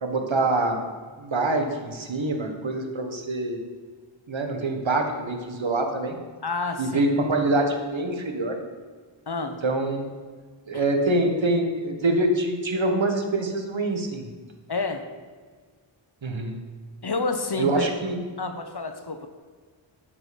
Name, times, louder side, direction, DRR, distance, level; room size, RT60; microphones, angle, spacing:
voice 1, 0.0-0.8 1.2-3.6 4.3-6.2 6.8-8.6 9.6-10.1 10.7-14.3 16.2-16.6 17.6-18.2, right 2 dB, 65° right, 4 dB, 1.5 m, -25 dB
voice 2, 6.4-7.0 9.3-9.6 10.7-10.8 14.7-15.0 17.0-17.9 18.4-19.3, left 3 dB, 50° left, 7 dB, 1.0 m, -29 dB
11.0 x 6.0 x 5.2 m, 1.6 s
wide cardioid pair, 55°, 49 cm